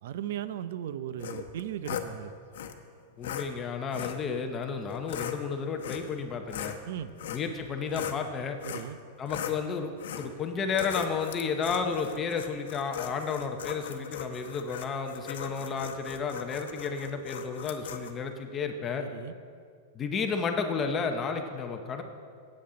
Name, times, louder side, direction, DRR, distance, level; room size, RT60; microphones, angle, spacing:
voice 1, 0.0-2.3 6.9-7.1 8.6-9.0 19.0-19.3, right 10 dB, 65° right, 13 dB, 0.5 m, -37 dB
sound 1, 1.2-2.1 2.5-2.7 3.2-3.5 3.9-4.2 4.9-5.4 5.8-6.2 6.5-8.2 8.6-8.9 9.3-9.6 10.0-10.3 10.7-18.1, left 9 dB, 80° left, 0.9 m, -38 dB
voice 2, 3.2-6.8 7.3-8.6 9.2-19.1 19.9-22.0, left 5 dB, 20° left, 5 dB, 0.7 m, -32 dB
15.5 x 8.8 x 3.8 m, 2.2 s
supercardioid pair, 170°, 0 cm